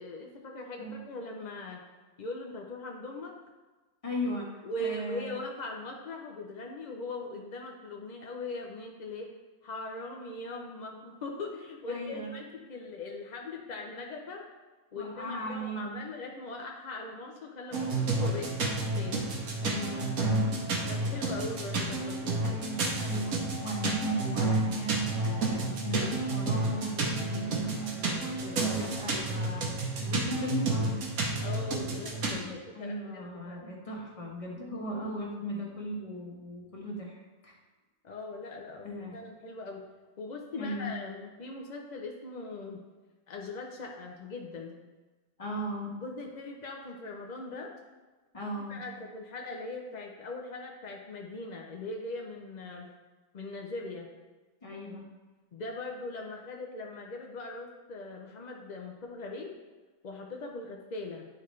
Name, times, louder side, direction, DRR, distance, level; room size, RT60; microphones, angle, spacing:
voice 1, 0.0-1.8 2.2-3.3 4.6-9.3 9.6-14.4 14.9-19.3 20.9-22.6 31.4-33.6 38.0-39.8 40.2-42.8 43.3-44.7 46.0-47.7 48.6-52.9 53.3-54.1 55.5-59.5 60.0-61.3, left 2 dB, 65° left, 1 dB, 0.4 m, -40 dB
voice 2, 4.0-5.4 11.9-12.3 15.0-16.0 19.6-21.4 22.4-29.7 30.0-31.1 32.7-37.2 37.4-37.6 38.8-39.2 40.5-40.9 45.4-45.9 48.3-48.8 54.6-55.0, right 1 dB, 25° left, -3 dB, 1.2 m, -37 dB
sound 1, 17.7-32.4, right 2 dB, 70° right, 1.4 m, -31 dB
9.8 x 3.9 x 3.1 m, 1.3 s
omnidirectional pair, 1.6 m